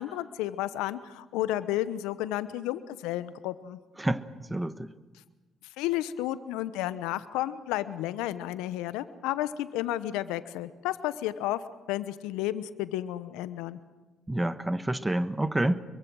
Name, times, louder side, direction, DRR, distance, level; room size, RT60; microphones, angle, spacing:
voice 1, 0.0-3.8 5.8-11.6 11.9-13.8, left 14 dB, 80° left, 14 dB, 1.0 m, -32 dB
voice 2, 4.5-4.9 14.3-15.8, right 1 dB, 15° right, 13 dB, 1.3 m, -28 dB
25.0 x 23.0 x 6.3 m, 1.2 s
hypercardioid pair, 55°, 0 cm